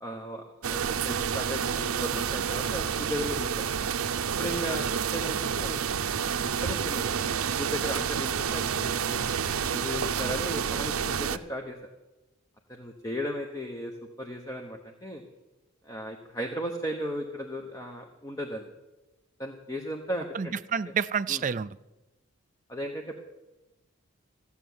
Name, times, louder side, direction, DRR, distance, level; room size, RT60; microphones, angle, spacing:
voice 1, 0.0-3.7 4.4-5.8 6.6-9.2 9.6-11.8 12.7-13.9 14.2-15.2 15.8-18.7 19.4-20.5 20.9-21.0 21.3-21.4 22.7-23.1, equal, 15° left, 3 dB, 1.0 m, -36 dB
sound 1, 0.6-11.4, right 7 dB, 90° right, 0.6 m, -29 dB
voice 2, 20.3-21.8, right 7 dB, 35° right, 14 dB, 0.4 m, -29 dB
15.0 x 7.1 x 9.4 m, 1.0 s
head